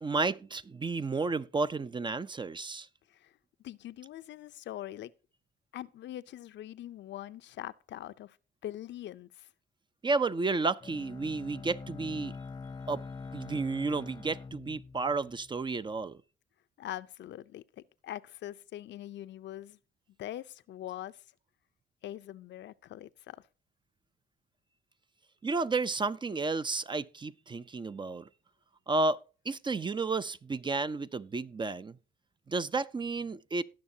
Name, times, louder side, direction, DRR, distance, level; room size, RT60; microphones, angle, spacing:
voice 1, 0.0-2.9 10.0-12.3 12.9-13.0 13.3-16.2 25.4-28.3 28.9-32.0 32.5-33.6, right 3 dB, 25° right, 0.4 m, -32 dB
voice 2, 3.6-5.1 5.7-8.4 8.6-9.5 16.8-17.6 18.0-19.8 20.2-21.2 22.0-23.5, left 13 dB, 65° left, 0.5 m, -43 dB
Bowed string instrument, 10.8-15.8, left 4 dB, 20° left, 0.7 m, -44 dB
18.0 x 6.4 x 2.7 m
cardioid pair, 90°, 20 cm